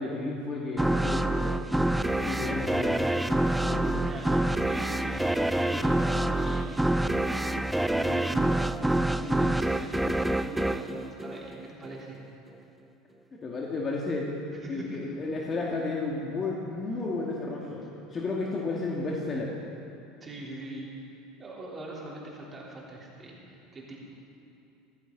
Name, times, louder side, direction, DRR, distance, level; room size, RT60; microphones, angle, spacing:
voice 1, 0.0-1.6 2.2-3.0 3.6-4.0 13.3-14.3 14.7-17.8 18.1-19.5, left 3 dB, 30° left, -3 dB, 2.1 m, -32 dB
sound 1, 0.8-12.0, right 1 dB, 5° right, 0.5 m, -27 dB
voice 2, 3.6-8.7 9.1-12.2 14.5-15.0 20.2-20.9 21.4-24.0, right 2 dB, 25° right, -3 dB, 3.7 m, -41 dB
15.5 x 15.5 x 4.0 m, 2.7 s
hypercardioid pair, 80°, 0 cm